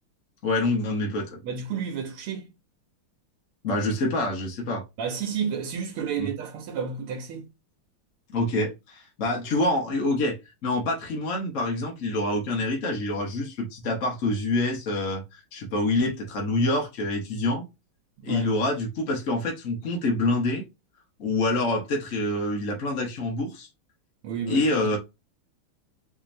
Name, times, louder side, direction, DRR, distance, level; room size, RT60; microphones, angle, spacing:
voice 1, 0.4-1.4 3.6-4.8 6.2-6.3 8.3-10.4 10.6-17.7 18.2-20.7 21.2-23.7 24.5-25.0, left 2 dB, 45° left, 1.1 m, -26 dB
voice 2, 1.4-2.5 5.0-7.5 18.2-18.5 24.2-25.0, right 6 dB, 85° right, 1.7 m, -31 dB
5.0 x 2.9 x 2.5 m
omnidirectional pair, 2.4 m